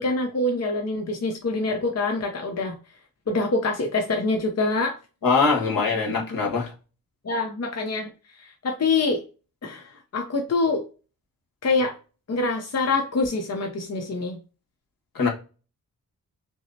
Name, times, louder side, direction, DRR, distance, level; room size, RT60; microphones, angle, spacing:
voice 1, 0.0-2.8 3.3-5.0 5.8-6.3 7.2-9.2 9.6-10.9 11.6-11.9 12.3-14.4, left 3 dB, 45° left, 0.8 m, -25 dB
voice 2, 5.2-6.7 15.1-15.3, left 4 dB, 70° left, 1.6 m, -22 dB
6.1 x 2.1 x 2.7 m
cardioid pair, 70°, 36 cm